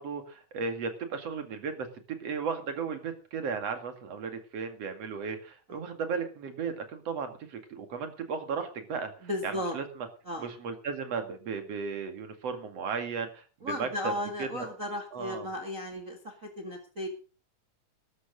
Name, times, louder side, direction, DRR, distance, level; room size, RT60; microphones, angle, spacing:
voice 1, 0.0-1.9 2.2-9.1 9.4-10.1 10.4-14.1 14.4-14.7 15.1-15.5, right 5 dB, 50° right, 7 dB, 3.1 m, -35 dB
voice 2, 9.2-9.7 10.3-10.5 13.6-17.1, left 1 dB, 30° right, 3 dB, 1.9 m, -35 dB
13.0 x 13.0 x 5.3 m, 0.36 s
omnidirectional pair, 3.8 m